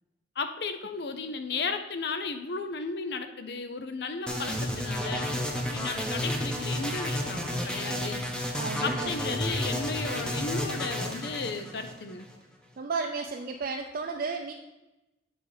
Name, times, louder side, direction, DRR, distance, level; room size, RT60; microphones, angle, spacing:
voice 1, 0.4-8.2 8.8-12.3, left 4 dB, 65° left, 8 dB, 0.7 m, -34 dB
sound 1, 4.3-12.3, equal, 5° left, 0.8 m, -31 dB
voice 2, 8.5-9.3 12.8-14.5, right 4 dB, 55° right, 2 dB, 0.5 m, -33 dB
8.0 x 4.2 x 4.9 m, 1.0 s
head